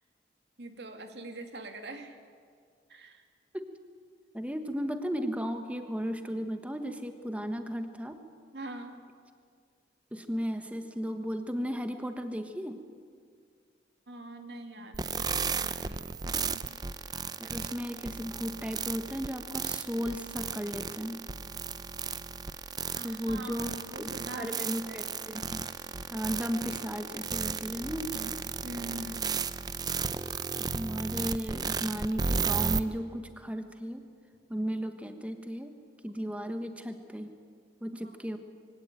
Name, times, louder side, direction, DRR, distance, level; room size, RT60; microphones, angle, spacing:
voice 1, 0.6-2.2 2.9-3.2 8.5-9.0 14.1-16.6 22.9-23.7 23.9-25.0 28.6-29.3 38.0-38.2, right 2 dB, 75° right, 5 dB, 2.2 m, -43 dB
voice 2, 4.3-8.2 10.1-12.8 17.4-21.2 23.0-23.7 24.0-25.7 26.1-28.3 30.7-34.0 34.5-35.7 36.0-37.3 37.8-38.4, equal, 10° right, 7 dB, 1.3 m, -35 dB
sound 1, 14.9-32.8, right 5 dB, 25° right, 0.5 m, -34 dB
23.5 x 17.0 x 9.1 m, 2.1 s
head